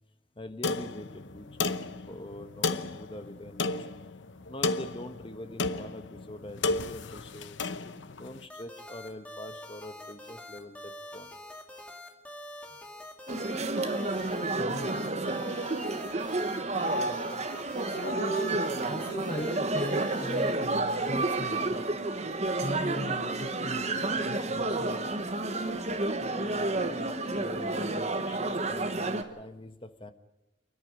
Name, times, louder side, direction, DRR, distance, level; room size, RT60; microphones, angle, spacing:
voice 1, 0.4-3.9 4.5-7.6 8.1-11.4 26.2-30.1, left 1 dB, 25° left, 9 dB, 1.2 m, -44 dB
sound 1, 0.6-8.4, left 3 dB, 65° left, 0.9 m, -33 dB
sound 2, 8.5-20.5, left 1 dB, 5° left, 2.1 m, -45 dB
sound 3, 13.3-29.2, right 2 dB, 35° right, 1.2 m, -30 dB
voice 2, 14.6-15.2 17.5-18.6 18.9-21.9 22.6-25.0, right 1 dB, 45° left, -1 dB, 6.7 m, -38 dB
28.0 x 10.5 x 9.9 m, 0.96 s
head